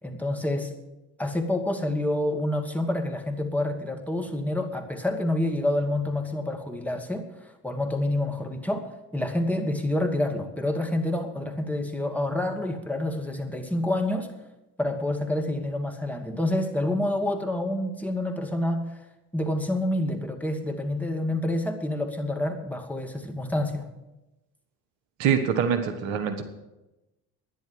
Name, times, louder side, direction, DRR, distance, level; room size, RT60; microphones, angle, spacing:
voice 1, 0.0-0.7 1.2-14.3 14.8-18.8 19.3-23.9, left 1 dB, 5° left, 3 dB, 2.4 m, -28 dB
voice 2, 25.2-26.4, right 7 dB, 70° right, 9 dB, 1.5 m, -24 dB
12.0 x 10.0 x 7.9 m, 1.0 s
hypercardioid pair, 60°, 46 cm